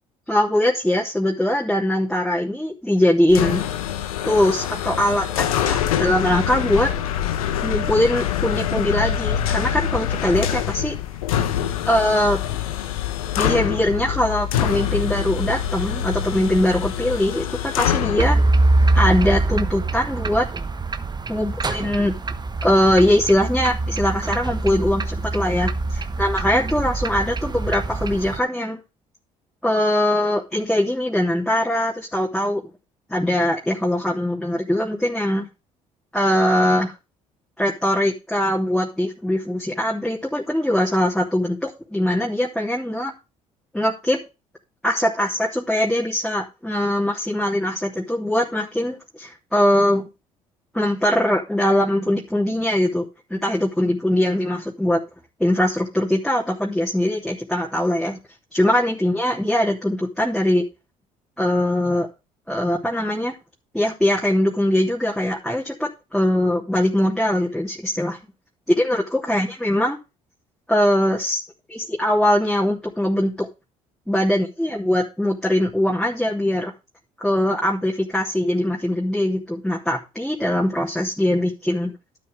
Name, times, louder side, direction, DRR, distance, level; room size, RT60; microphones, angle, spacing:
voice 1, 0.3-3.6 4.3-6.9 7.6-10.9 11.9-12.4 13.4-18.4 18.9-20.5 21.3-22.2 22.6-28.8 29.6-32.6 33.1-35.5 36.1-36.9 37.6-43.1 43.7-44.2 44.8-50.1 50.7-55.0 55.4-58.2 58.5-60.7 61.4-62.1 62.5-63.4 63.7-68.2 68.7-70.0 70.7-71.4 71.7-73.5 74.1-76.7 77.2-81.9, left 1 dB, 5° left, -3 dB, 3.1 m, -21 dB
sound 1, 3.3-18.3, left 10 dB, 85° left, 1.1 m, -25 dB
sound 2, 18.2-28.4, right 2 dB, 25° right, 1.1 m, -23 dB
12.0 x 7.8 x 3.5 m, 0.27 s
hypercardioid pair, 55°, 18 cm